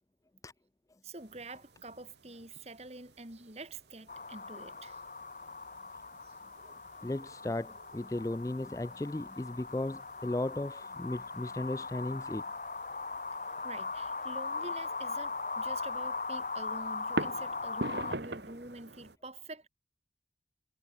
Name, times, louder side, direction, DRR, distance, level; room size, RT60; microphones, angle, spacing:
voice 1, 1.0-5.0 6.2-6.4 13.6-19.7, right 2 dB, 35° right, 4.0 m, -47 dB
sound 1, 1.2-19.2, right 2 dB, 80° right, 3.5 m, -46 dB
sound 2, 4.1-18.2, left 4 dB, 45° left, 1.9 m, -39 dB
voice 2, 7.0-12.4, left 1 dB, 20° left, 0.4 m, -36 dB
head